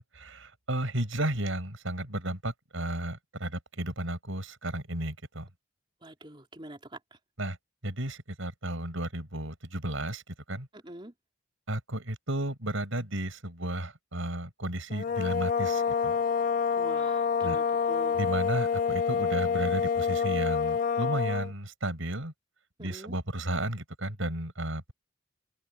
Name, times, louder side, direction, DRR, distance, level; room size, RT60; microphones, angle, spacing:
voice 1, 0.0-5.5 7.4-7.6 7.8-10.2 10.5-10.7 11.7-16.2 17.4-17.6 18.2-22.3 22.8-24.9, right 1 dB, 90° right, 5.7 m, -33 dB
voice 2, 6.0-7.2 10.7-11.1 16.7-18.2 22.8-23.2, right 1 dB, 25° right, 3.3 m, -45 dB
sound 1, 14.9-21.5, left 6 dB, 40° left, 0.3 m, -27 dB
open air
head